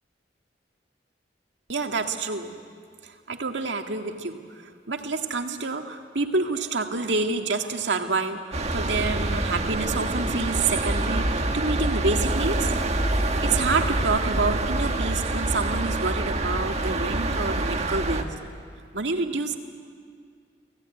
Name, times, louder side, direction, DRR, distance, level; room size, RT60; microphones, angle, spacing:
voice 1, 1.7-2.5 3.0-4.4 4.9-12.7 13.4-18.3 18.9-19.6, right 3 dB, 90° right, 4 dB, 1.9 m, -28 dB
sound 1, 8.5-18.2, right 2 dB, 40° right, 1.7 m, -26 dB
29.0 x 18.5 x 9.8 m, 2.2 s
head